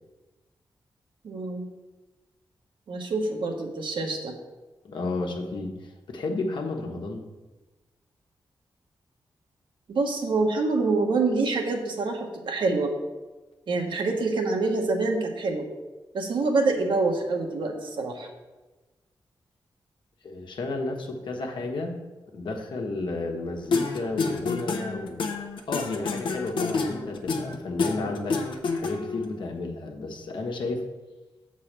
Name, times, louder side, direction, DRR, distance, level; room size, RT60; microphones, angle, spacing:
voice 1, 1.2-1.7 2.9-4.3 9.9-12.9 13.7-15.7 16.1-18.3, right 3 dB, 75° right, 2 dB, 1.2 m, -26 dB
voice 2, 4.8-7.2 20.2-21.9 22.3-25.2 25.7-28.4 28.7-30.8, left 2 dB, 75° left, 2 dB, 1.2 m, -32 dB
sound 1, 23.7-29.2, left 4 dB, 90° left, 0.8 m, -28 dB
7.4 x 4.0 x 6.6 m, 1.2 s
wide cardioid pair, 120°, 8 cm